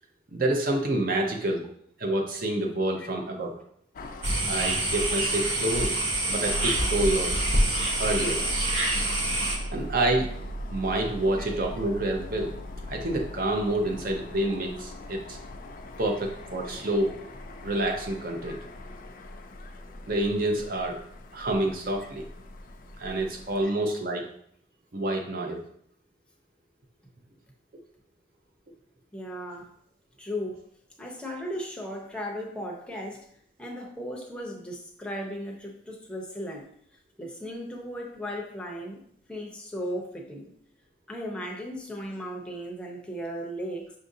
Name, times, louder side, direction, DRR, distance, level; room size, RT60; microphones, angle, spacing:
voice 1, 0.3-1.7 2.0-3.5 4.5-5.9 6.3-7.3 8.0-8.5 9.7-10.3 10.7-12.5 12.9-15.4 16.0-17.1 17.6-18.6 20.1-21.0 21.3-22.3 23.0-24.2 24.9-25.6, right 1 dB, 50° right, 2 dB, 0.6 m, -28 dB
sound 1, 3.9-23.6, left 1 dB, 45° left, 0.3 m, -39 dB
sound 2, 4.2-9.6, right 1 dB, 85° right, 1.1 m, -26 dB
voice 2, 29.1-29.7 30.2-30.6 31.0-33.3 33.6-36.6 37.2-39.0 39.3-40.5 41.1-43.9, equal, 5° left, -1 dB, 0.6 m, -36 dB
6.0 x 2.5 x 2.6 m, 0.67 s
head